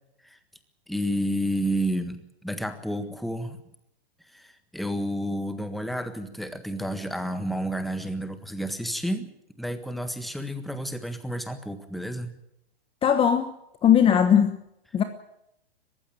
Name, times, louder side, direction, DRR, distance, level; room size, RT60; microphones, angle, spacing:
voice 1, 0.9-3.6 4.3-9.3 9.6-12.3, equal, ahead, 9 dB, 1.5 m, -30 dB
voice 2, 13.0-13.5 13.8-14.6 14.9-15.0, left 8 dB, 15° left, 9 dB, 1.2 m, -19 dB
21.5 x 15.5 x 9.2 m, 0.82 s
hypercardioid pair, 130°, 32 cm